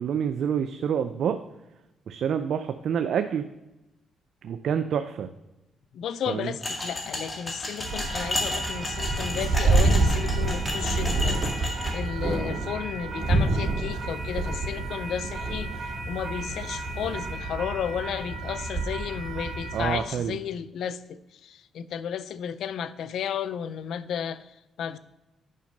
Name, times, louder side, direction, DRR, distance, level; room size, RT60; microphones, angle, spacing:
voice 1, 0.0-1.4 2.1-3.5 4.4-5.3 6.3-6.5 19.7-20.4, right 8 dB, 70° right, 9 dB, 0.4 m, -27 dB
voice 2, 5.9-25.0, left 8 dB, 75° left, 15 dB, 0.4 m, -33 dB
sound 1, 6.6-11.9, left 1 dB, 30° left, 2.0 m, -32 dB
sound 2, 7.8-20.0, right 2 dB, 35° right, 2.9 m, -28 dB
7.6 x 5.3 x 5.2 m, 0.99 s
cardioid pair, 80°, 0 cm